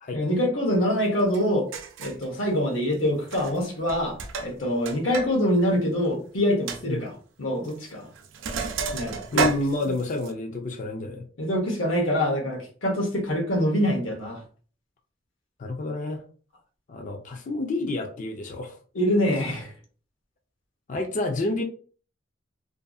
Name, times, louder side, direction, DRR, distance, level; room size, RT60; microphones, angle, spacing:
voice 1, 0.1-1.7 2.0-7.1 7.4-8.1 8.9-9.5 9.8-9.9 11.4-14.4 18.9-19.7, equal, 85° left, 0.9 m, -25 dB
Sink (filling or washing), 1.3-1.4 1.7-2.3 3.2-3.6 3.9-5.3 5.6-5.7 6.1-6.2 6.7-6.8 7.7-7.9 8.2-10.3, right 4 dB, 70° right, 0.3 m, -30 dB
voice 2, 9.3-11.3 15.6-16.2 16.9-18.8 20.9-21.6, left 2 dB, 40° left, 0.4 m, -29 dB
2.5 x 2.5 x 2.3 m
head